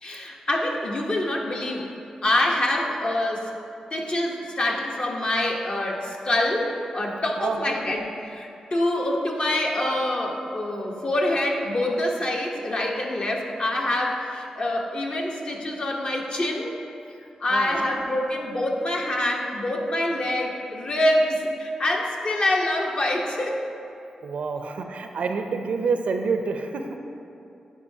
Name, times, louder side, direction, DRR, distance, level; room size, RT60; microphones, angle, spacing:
voice 1, 0.0-1.9 2.2-3.5 3.9-16.8 17.4-23.6, left 1 dB, 50° left, 0 dB, 0.9 m, -25 dB
voice 2, 7.4-7.8 17.5-17.9 24.2-26.9, right 4 dB, 75° right, 6 dB, 0.4 m, -28 dB
9.8 x 4.7 x 2.7 m, 2.7 s
cardioid pair, 55°, 2 cm